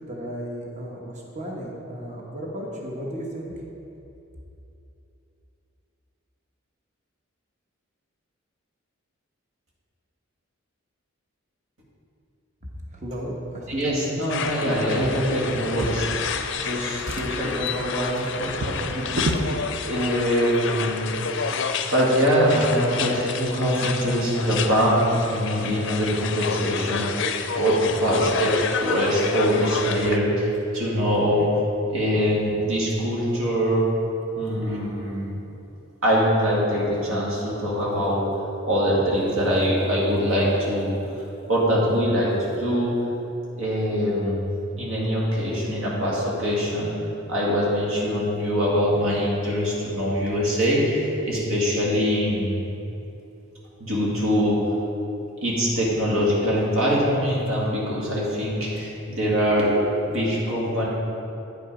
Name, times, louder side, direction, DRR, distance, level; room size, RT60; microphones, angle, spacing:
voice 1, 0.0-3.5 12.9-14.7, equal, 35° right, -2 dB, 1.1 m, -34 dB
voice 2, 13.7-19.5 19.8-27.1 27.5-31.5 31.9-33.9 34.4-35.3 36.0-38.3 38.6-40.9 41.5-43.0 43.6-44.5 44.8-46.9 47.3-52.7 53.8-54.6 55.4-60.9, equal, 80° right, -5 dB, 2.0 m, -23 dB
sound 1, 14.3-30.2, left 6 dB, 60° left, 0.4 m, -30 dB
Drawer open or close, 15.6-16.6 16.9-19.5 20.4-20.6 20.9-21.0, right 1 dB, 60° right, 0.8 m, -31 dB
9.2 x 5.4 x 4.9 m, 2.9 s
head